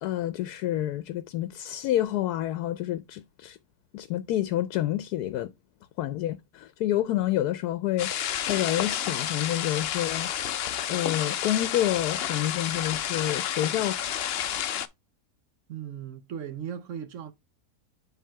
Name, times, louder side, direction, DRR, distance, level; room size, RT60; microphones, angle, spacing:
voice 1, 0.0-3.6 3.9-5.5 6.0-10.3 10.9-14.0, left 13 dB, 90° left, 1.1 m, -28 dB
sound 1, 8.0-14.9, left 10 dB, 65° left, 0.6 m, -30 dB
voice 2, 15.7-17.3, right 8 dB, 65° right, 0.9 m, -37 dB
7.5 x 3.3 x 4.4 m
omnidirectional pair, 1.6 m